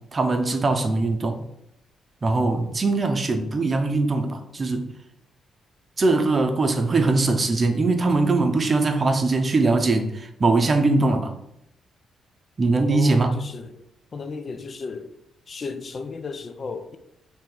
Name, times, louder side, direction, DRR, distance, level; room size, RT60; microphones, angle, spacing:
voice 1, 0.1-1.4 2.2-4.9 6.0-11.3 12.6-13.4, right 3 dB, 35° right, 0.6 m, -21 dB
voice 2, 12.9-13.8 14.1-15.1 15.5-17.0, left 4 dB, 40° left, 0.4 m, -34 dB
3.8 x 2.9 x 4.4 m
cardioid pair, 90°, 0 cm